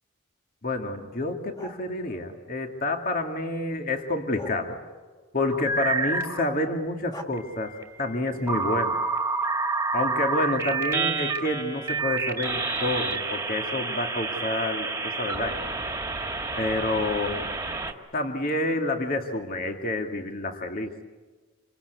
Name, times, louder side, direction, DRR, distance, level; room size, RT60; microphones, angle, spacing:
voice 1, 0.6-4.8 5.3-7.7 8.0-9.0 9.9-15.6 16.6-17.5 18.1-20.9, left 2 dB, 40° left, 3 dB, 2.3 m, -28 dB
sound 1, 1.5-3.1 4.3-5.8 7.1-7.2, left 1 dB, 20° left, 2.1 m, -45 dB
sound 2, 5.5-6.4 7.3-17.9, right 3 dB, 10° right, 2.2 m, -29 dB
27.5 x 25.0 x 8.3 m, 1.3 s
head